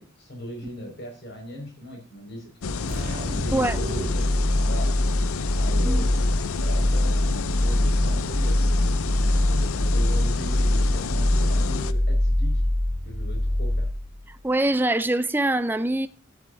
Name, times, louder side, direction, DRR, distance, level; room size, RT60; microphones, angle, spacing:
voice 1, 0.0-3.0 3.3-4.9 5.6-6.1 6.6-8.7 9.5-12.6 13.0-13.9, equal, 50° left, 5.3 m, -38 dB
sound 1, 2.6-11.9, left 5 dB, 85° left, 0.6 m, -30 dB
sound 2, 2.9-14.3, left 1 dB, 30° right, 2.9 m, -23 dB
voice 2, 14.4-16.1, right 1 dB, 10° right, 0.5 m, -23 dB
13.5 x 11.0 x 2.6 m
head